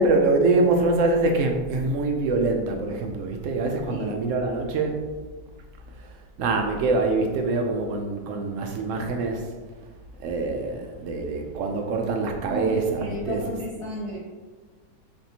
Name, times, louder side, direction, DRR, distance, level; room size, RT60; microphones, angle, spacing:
voice 1, 0.0-5.0 6.0-9.5 10.2-13.6, right 3 dB, 70° right, 3 dB, 0.7 m, -24 dB
voice 2, 12.4-14.2, left 1 dB, 20° left, -9 dB, 1.0 m, -33 dB
4.3 x 3.2 x 2.7 m, 1.4 s
omnidirectional pair, 1.8 m